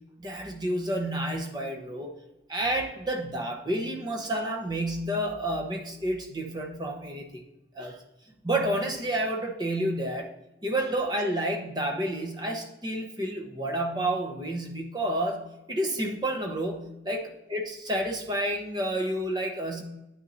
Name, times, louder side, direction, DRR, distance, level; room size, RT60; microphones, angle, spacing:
voice 1, 0.2-2.1 2.5-7.4 7.7-8.0 8.4-10.3 10.6-15.4 15.7-17.2 17.5-19.8, right 1 dB, 25° right, 2 dB, 0.9 m, -30 dB
9.3 x 6.0 x 2.6 m, 0.95 s
head